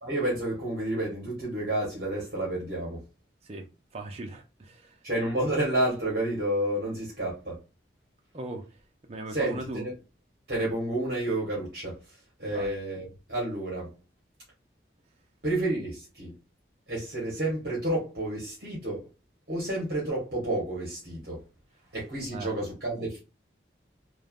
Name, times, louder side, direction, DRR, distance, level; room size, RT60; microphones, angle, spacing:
voice 1, 0.0-3.0 5.0-7.6 9.3-9.9 10.5-12.0 12.4-13.9 15.4-16.3 16.9-19.1 19.5-21.4 21.9-23.2, right 1 dB, 55° right, 1.1 m, -30 dB
voice 2, 3.9-5.0 8.3-8.8 9.1-9.9 12.4-12.7 22.3-22.5, right 2 dB, 35° right, 0.4 m, -38 dB
3.1 x 2.1 x 2.3 m
head